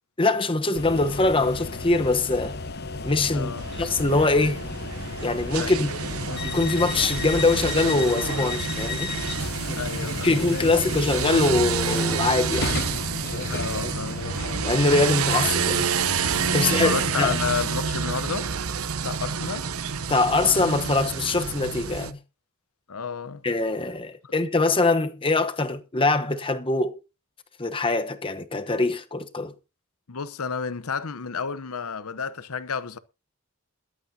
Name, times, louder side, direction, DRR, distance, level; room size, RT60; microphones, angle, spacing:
voice 1, 0.2-2.6 3.0-3.5 3.8-4.6 5.2-5.9 6.4-9.1 10.2-12.8 14.6-15.9 16.5-17.3 20.1-22.2 23.4-27.0 27.6-29.5, left 3 dB, 25° left, 1.0 m, -23 dB
sound 1, 0.8-17.6, left 3 dB, 50° left, 1.0 m, -33 dB
voice 2, 3.3-3.7 5.6-5.9 9.8-10.3 13.5-14.4 15.1-15.2 16.5-18.5 19.0-19.7 22.9-23.4 24.2-24.3 30.1-33.0, left 5 dB, 80° left, 0.8 m, -31 dB
sound 2, 3.6-22.1, right 6 dB, 80° right, 0.8 m, -29 dB
22.5 x 8.5 x 2.8 m
head